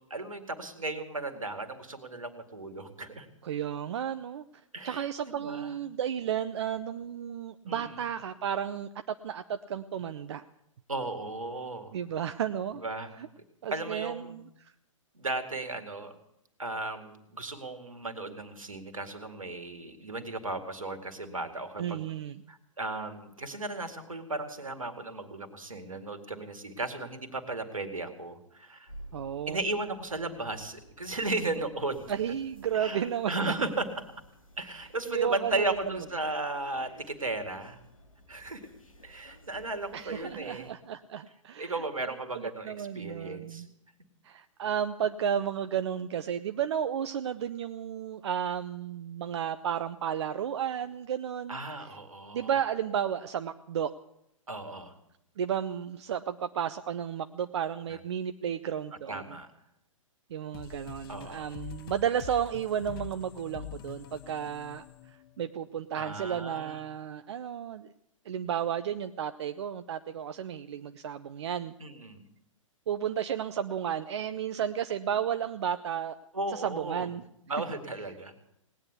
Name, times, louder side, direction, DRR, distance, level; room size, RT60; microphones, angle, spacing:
voice 1, 0.0-3.3 4.7-5.8 7.7-8.0 10.9-12.0 12.7-13.3 13.7-14.4 15.1-16.1 16.6-22.0 22.5-28.9 29.5-32.1 32.7-33.9 34.6-37.8 38.3-38.6 39.0-40.7 41.6-43.7 51.5-52.5 54.5-54.9 57.9-58.0 59.1-59.5 61.1-61.5 66.0-66.8 71.8-72.2 76.3-77.1 77.5-78.3, right 2 dB, 80° right, 8 dB, 2.2 m, -35 dB
voice 2, 3.4-4.4 4.8-10.4 11.9-12.8 13.6-14.7 21.8-22.4 29.1-29.6 32.1-33.3 35.1-35.8 39.9-41.8 42.3-43.7 44.2-51.6 52.3-53.9 55.4-59.2 60.3-64.8 65.4-67.9 68.3-71.7 72.9-76.2 76.5-77.2, right 9 dB, 55° right, 10 dB, 0.6 m, -33 dB
sound 1, 28.9-40.7, equal, 80° left, 2.3 m, -53 dB
sound 2, 60.5-65.8, left 11 dB, 45° left, 0.7 m, -45 dB
18.5 x 9.7 x 8.2 m, 0.78 s
figure-of-eight pair, 115°, 17 cm